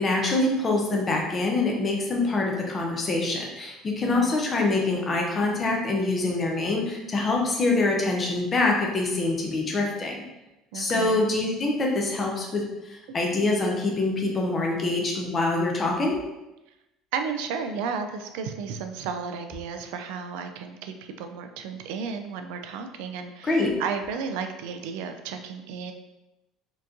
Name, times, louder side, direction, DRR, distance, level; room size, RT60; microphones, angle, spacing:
voice 1, 0.0-10.1 10.7-16.2 23.4-23.7, left 2 dB, 20° left, 0 dB, 0.6 m, -25 dB
voice 2, 4.0-4.3 10.7-11.2 17.1-25.9, right 6 dB, 80° right, 6 dB, 0.4 m, -33 dB
4.4 x 2.9 x 2.6 m, 0.98 s
cardioid pair, 180°, 0 cm